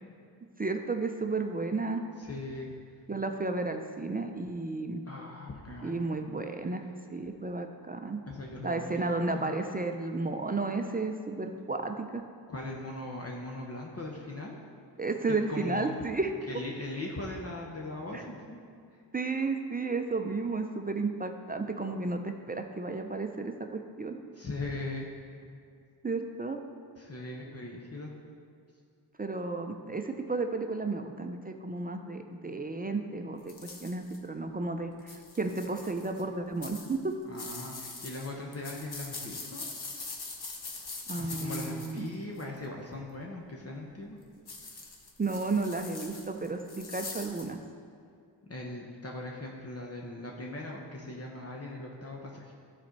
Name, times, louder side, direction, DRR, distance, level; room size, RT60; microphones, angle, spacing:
voice 1, 0.6-2.0 3.1-5.0 5.8-6.8 7.1-8.2 8.6-12.2 15.0-16.3 18.1-18.2 19.1-24.2 26.0-26.6 29.2-37.1 41.1-42.1 45.2-47.6, right 3 dB, 20° right, 5 dB, 0.5 m, -33 dB
voice 2, 2.2-2.7 5.1-6.0 8.3-9.6 12.5-14.6 15.3-15.9 16.5-18.6 24.3-25.0 27.0-28.1 37.3-39.6 41.1-44.2 48.4-52.5, left 2 dB, 35° left, -1 dB, 1.1 m, -40 dB
sound 1, 33.5-34.2 35.0-36.2 36.6-42.6 44.5-47.5, left 3 dB, 60° left, 1.2 m, -43 dB
12.5 x 4.3 x 4.6 m, 2.4 s
cardioid pair, 75°, 43 cm